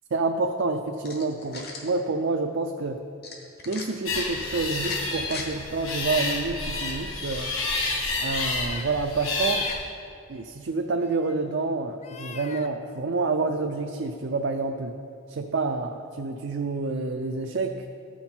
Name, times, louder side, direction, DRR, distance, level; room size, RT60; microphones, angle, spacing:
voice 1, 0.1-3.0 3.7-7.5 8.2-9.6 10.3-14.9 15.3-17.8, right 3 dB, 60° right, 5 dB, 0.5 m, -28 dB
sound 1, 1.0-1.9 3.2-3.9 4.7-5.5, left 4 dB, 50° left, 1.2 m, -38 dB
sound 2, 4.1-9.7, left 3 dB, 85° left, 1.6 m, -29 dB
sound 3, 7.4-7.8 8.2-8.8 9.2-9.8 10.5-10.7 11.1-11.4 12.0-12.7, left 7 dB, 35° left, 0.4 m, -40 dB
14.0 x 5.9 x 4.4 m, 2.5 s
head